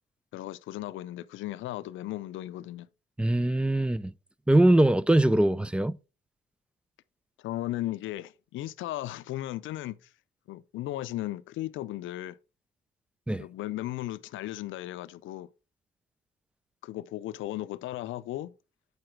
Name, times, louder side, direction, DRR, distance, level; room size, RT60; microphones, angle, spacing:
voice 1, 0.3-2.9 7.4-10.1 10.5-12.4 13.4-15.5 16.8-18.5, left 15 dB, 80° left, 0.5 m, -36 dB
voice 2, 3.2-4.1 4.5-6.0 13.3-13.4, right 1 dB, 5° right, 0.3 m, -22 dB
7.8 x 4.7 x 4.5 m
cardioid pair, 90°, 20 cm